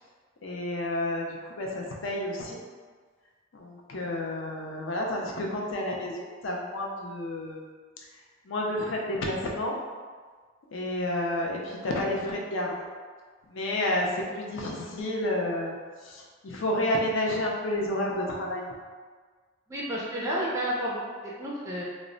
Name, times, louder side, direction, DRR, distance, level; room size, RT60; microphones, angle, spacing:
voice 1, 0.4-2.6 3.5-7.6 8.5-9.8 10.7-12.7 13.5-15.8 16.0-18.7, left 1 dB, 65° left, -1 dB, 0.4 m, -30 dB
voice 2, 19.7-21.8, equal, 15° right, -6 dB, 0.3 m, -31 dB
2.0 x 2.0 x 3.7 m, 1.5 s
head